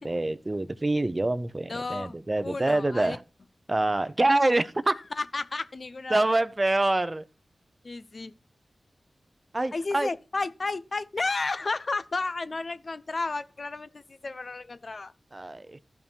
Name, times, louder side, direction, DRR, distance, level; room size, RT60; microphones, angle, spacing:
voice 1, 0.0-3.2 3.7-4.9 6.1-7.2 9.5-10.1 15.3-15.8, right 2 dB, 35° right, 0.7 m, -26 dB
voice 2, 1.7-2.2 2.4-3.2 5.2-6.4 7.8-8.3 9.7-15.1, left 3 dB, 55° left, 0.9 m, -32 dB
13.0 x 5.6 x 4.6 m
cardioid pair, 45°, 0 cm